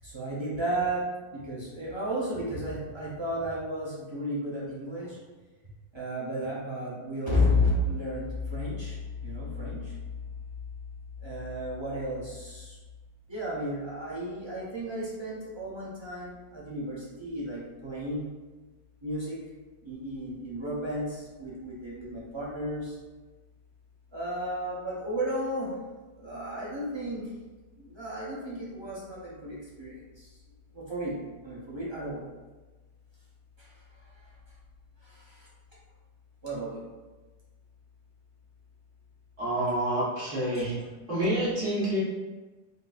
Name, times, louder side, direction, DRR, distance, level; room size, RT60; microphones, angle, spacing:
voice 1, 0.0-5.2 5.9-10.0 11.2-12.8 13.3-18.3 19.0-19.4 19.8-23.0 24.1-25.7 26.1-27.3 27.8-30.3 30.7-31.1 31.4-32.2 33.6-34.3 35.0-35.5 36.4-36.8 40.5-40.7, equal, 35° right, -7 dB, 0.4 m, -33 dB
voice 2, 39.4-40.7 41.1-42.0, right 1 dB, 60° right, -9 dB, 1.7 m, -28 dB
3.7 x 2.6 x 2.4 m, 1.2 s
omnidirectional pair, 1.5 m